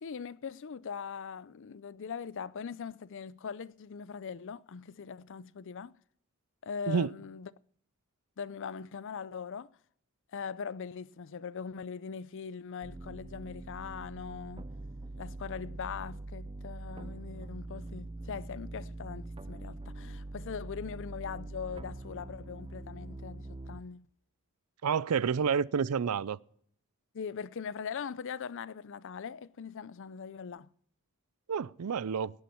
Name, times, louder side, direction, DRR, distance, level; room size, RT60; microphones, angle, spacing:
voice 1, 0.0-5.9 6.6-7.5 8.4-9.8 10.3-14.7 15.2-24.1 27.1-30.7, left 6 dB, 60° left, 0.5 m, -41 dB
sound 1, 12.8-23.8, right 2 dB, 25° right, 0.5 m, -43 dB
voice 2, 24.8-26.4 31.5-32.3, right 6 dB, 80° right, 0.4 m, -29 dB
18.5 x 8.9 x 4.5 m
head